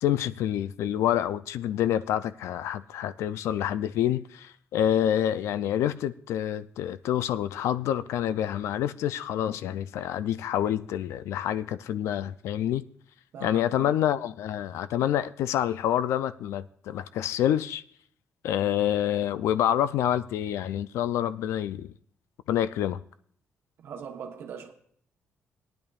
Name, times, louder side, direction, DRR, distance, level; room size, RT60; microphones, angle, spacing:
voice 1, 0.0-12.8 13.4-17.8 18.4-21.9 22.5-23.0, left 11 dB, 80° left, 0.4 m, -27 dB
voice 2, 13.3-14.0 23.8-24.7, right 7 dB, 60° right, 1.1 m, -41 dB
18.0 x 10.5 x 2.4 m
cardioid pair, 150°, 5 cm